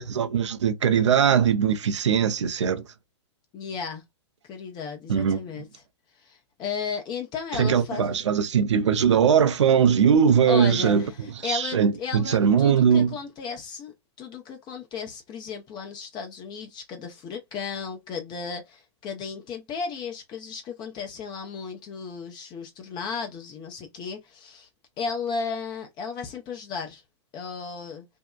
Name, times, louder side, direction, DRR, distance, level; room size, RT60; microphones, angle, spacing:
voice 1, 0.0-2.8 5.1-5.4 7.5-11.1 11.4-13.1, right 7 dB, 80° right, 0.5 m, -20 dB
voice 2, 3.5-4.0 4.4-5.8 6.2-8.2 10.5-24.7 25.0-27.0 27.3-28.0, left 5 dB, 30° left, 0.7 m, -34 dB
2.7 x 2.1 x 2.3 m
hypercardioid pair, 115°, 15 cm